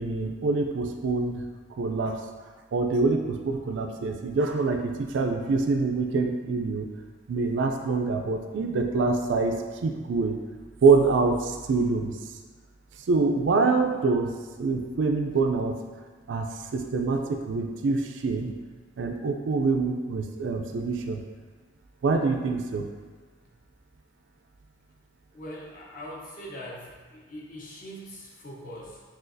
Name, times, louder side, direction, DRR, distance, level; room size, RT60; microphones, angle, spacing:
voice 1, 0.0-1.4 1.8-2.2 2.7-6.9 7.3-10.4 10.8-12.2 13.1-14.3 14.6-15.8 16.3-16.5 16.7-18.6 19.0-21.2 22.0-22.9, right 4 dB, 75° right, 4 dB, 0.4 m, -25 dB
voice 2, 25.3-29.0, equal, 45° left, -4 dB, 0.8 m, -42 dB
6.1 x 2.4 x 2.6 m, 1.4 s
head